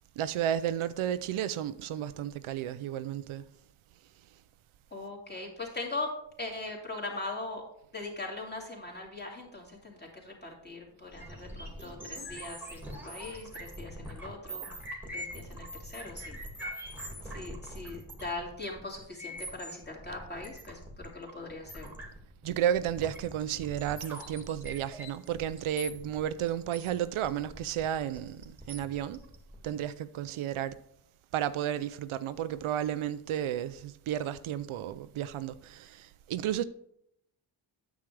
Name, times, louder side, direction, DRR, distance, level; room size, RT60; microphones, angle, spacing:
voice 1, 0.2-3.5 22.4-29.2 29.6-30.8 31.3-36.6, right 10 dB, 80° right, 0.5 m, -32 dB
voice 2, 4.9-6.1 6.4-7.6 7.9-14.7 15.1-16.4 17.2-21.9, left 2 dB, 20° left, 2.6 m, -40 dB
sound 1, 11.1-29.7, equal, 5° right, 1.8 m, -43 dB
9.1 x 7.3 x 3.3 m
cardioid pair, 85°, 48 cm